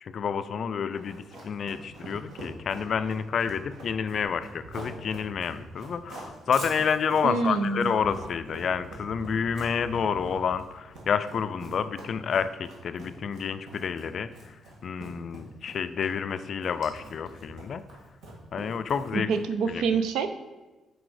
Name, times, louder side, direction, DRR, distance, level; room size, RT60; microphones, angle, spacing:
voice 1, 0.0-14.6 14.8-17.8 18.5-19.3 19.7-19.9, left 6 dB, 40° left, 12 dB, 0.3 m, -29 dB
Run, 1.0-19.6, right 1 dB, 55° right, 1.8 m, -44 dB
voice 2, 7.2-7.9 19.1-20.3, right 5 dB, 85° right, 9 dB, 0.5 m, -26 dB
6.1 x 4.8 x 4.8 m, 1.2 s
cardioid pair, 165°, 0 cm